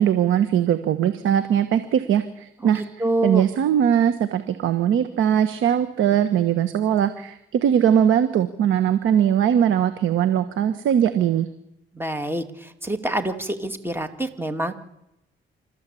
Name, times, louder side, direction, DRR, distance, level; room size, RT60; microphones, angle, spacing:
voice 1, 0.0-2.8 3.2-11.5, right 9 dB, 80° right, 11 dB, 1.3 m, -20 dB
voice 2, 2.7-3.5 11.9-14.7, right 1 dB, 10° right, 8 dB, 2.6 m, -26 dB
27.0 x 13.5 x 8.5 m, 0.86 s
cardioid pair, 90°, 20 cm